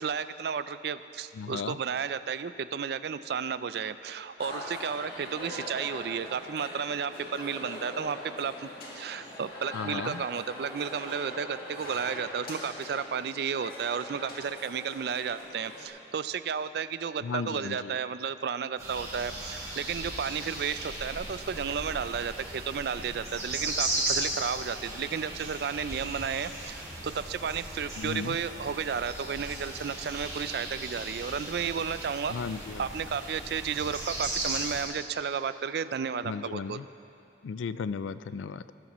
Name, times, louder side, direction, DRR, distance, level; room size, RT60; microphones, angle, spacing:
voice 1, 0.0-32.3 32.8-36.8, right 6 dB, 60° right, 13 dB, 0.4 m, -33 dB
voice 2, 1.3-1.8 9.7-10.2 17.2-18.0 28.0-28.4 32.3-32.9 36.2-36.9 37.4-38.6, left 5 dB, 85° left, 15 dB, 0.4 m, -35 dB
sound 1, 4.4-15.9, left 1 dB, 50° left, 2.1 m, -42 dB
sound 2, 18.8-34.8, right 2 dB, 20° right, 3.1 m, -36 dB
18.5 x 12.5 x 3.0 m, 2.7 s
head